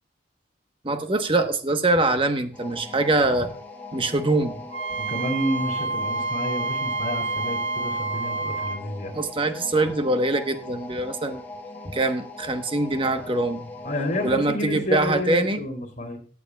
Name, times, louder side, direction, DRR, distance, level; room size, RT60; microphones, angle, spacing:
voice 1, 0.8-3.5 3.9-4.6 9.1-11.4 11.9-13.7 14.2-15.6, right 2 dB, 25° right, 7 dB, 1.0 m, -23 dB
sound 1, 2.5-14.4, left 2 dB, 10° left, 1.5 m, -40 dB
Wind instrument woodwind instrument, 4.7-8.8, right 3 dB, 85° right, 1.3 m, -28 dB
voice 2, 5.0-9.1 13.8-16.2, equal, 40° left, 4 dB, 2.8 m, -29 dB
16.0 x 9.7 x 2.3 m, 0.41 s
head